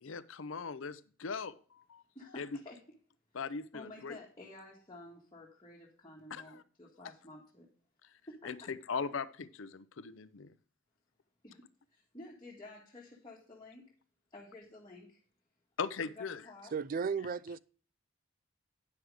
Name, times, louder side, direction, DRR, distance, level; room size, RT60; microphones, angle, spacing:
voice 1, 0.0-2.0 2.4-2.5 3.3-4.2 6.3-6.6 7.0-7.1 8.4-10.5 15.8-16.4, left 5 dB, 75° left, 0.6 m, -40 dB
voice 2, 2.2-2.8 3.3-3.4 3.7-7.7 8.3-8.5 11.4-11.6 11.9-13.9 14.3-15.2 16.0-16.7, left 2 dB, 20° left, 1.8 m, -51 dB
voice 3, 16.7-17.6, right 6 dB, 45° right, 0.4 m, -34 dB
9.6 x 6.2 x 4.9 m
head